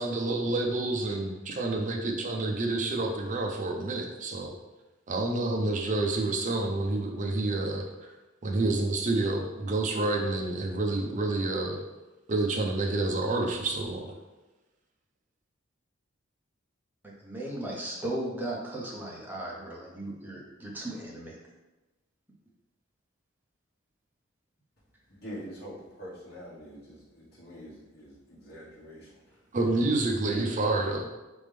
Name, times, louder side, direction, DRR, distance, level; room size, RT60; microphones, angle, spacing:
voice 1, 0.0-4.5 5.1-7.9 8.4-11.8 12.3-14.2 29.5-31.1, right 2 dB, 40° right, 2 dB, 0.6 m, -28 dB
voice 2, 17.2-21.3, right 1 dB, 10° right, -4 dB, 0.8 m, -36 dB
voice 3, 25.1-29.2 30.3-30.6, equal, 55° left, -8 dB, 1.4 m, -45 dB
4.2 x 3.5 x 3.3 m, 1.1 s
head